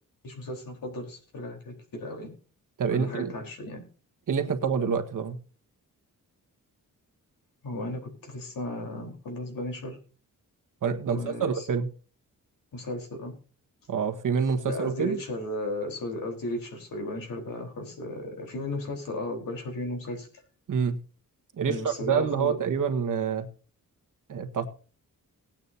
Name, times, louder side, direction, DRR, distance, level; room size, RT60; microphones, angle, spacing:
voice 1, 0.2-2.3 2.9-3.8 7.6-10.0 11.1-11.7 12.7-13.3 14.7-20.3 21.6-22.5, left 1 dB, 75° left, 3 dB, 4.1 m, -35 dB
voice 2, 2.8-3.3 4.3-5.4 10.8-11.9 13.9-15.2 20.7-21.0 21.6-23.5 24.3-24.7, right 6 dB, 65° right, 6 dB, 1.5 m, -27 dB
19.0 x 8.9 x 2.8 m, 0.37 s
wide cardioid pair, 140°, 34 cm